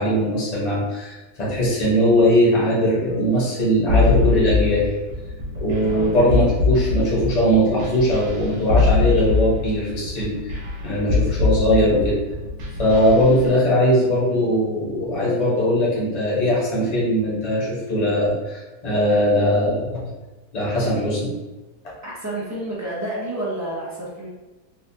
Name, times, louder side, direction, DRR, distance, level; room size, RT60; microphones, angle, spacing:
voice 1, 0.0-4.9 5.6-10.6 10.8-12.2 12.8-20.1 20.5-21.3, equal, 30° left, -7 dB, 1.0 m, -20 dB
sound 1, 3.9-13.4, left 4 dB, 90° right, 1.5 m, -22 dB
voice 2, 5.8-6.2 22.0-24.3, right 1 dB, 20° right, -7 dB, 0.5 m, -30 dB
4.0 x 2.3 x 2.7 m, 1.1 s
omnidirectional pair, 1.7 m